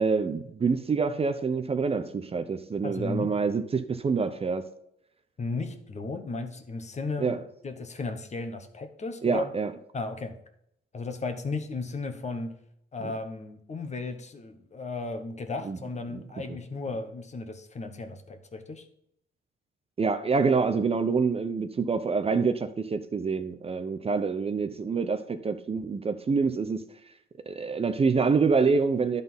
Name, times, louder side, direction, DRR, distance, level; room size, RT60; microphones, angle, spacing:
voice 1, 0.0-4.6 7.2-7.4 9.2-9.7 13.0-13.1 15.6-15.8 16.1-16.2 16.5-16.6 20.0-26.8 27.5-29.2, right 5 dB, 30° right, 0.6 m, -26 dB
voice 2, 2.8-3.4 5.4-9.5 9.9-10.4 10.9-12.6 12.9-18.9, left 3 dB, 35° left, 1.1 m, -35 dB
11.0 x 4.0 x 5.5 m
cardioid pair, 90°, 20 cm